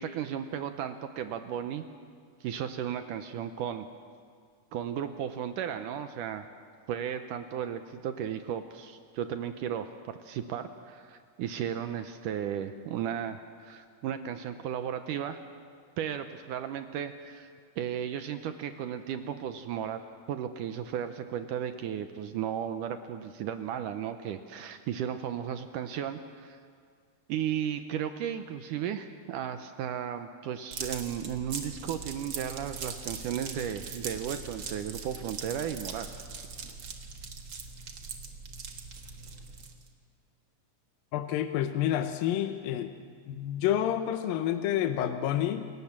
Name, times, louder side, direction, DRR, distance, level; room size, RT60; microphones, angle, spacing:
voice 1, 0.0-1.8 2.4-3.9 4.7-6.4 6.9-15.4 16.0-17.5 17.8-20.0 20.3-26.6 27.3-36.1, right 9 dB, 75° right, 8 dB, 2.0 m, -35 dB
sound 1, 30.7-39.9, right 5 dB, 50° right, 1.8 m, -41 dB
voice 2, 41.1-42.9 43.3-45.7, left 11 dB, 75° left, 8 dB, 2.5 m, -29 dB
29.5 x 17.5 x 7.3 m, 2.1 s
omnidirectional pair, 4.4 m